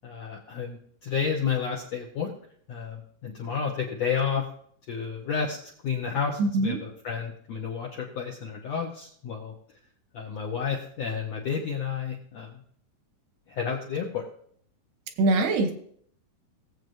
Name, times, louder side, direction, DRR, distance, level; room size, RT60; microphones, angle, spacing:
voice 1, 0.0-2.3 2.7-4.4 4.9-5.6 5.8-9.5 10.1-12.6 13.5-14.2, left 6 dB, 75° left, -1 dB, 1.5 m, -31 dB
voice 2, 6.4-6.8 15.2-15.7, right 2 dB, 85° right, 6 dB, 3.1 m, -22 dB
18.5 x 7.7 x 2.7 m, 0.62 s
omnidirectional pair, 4.5 m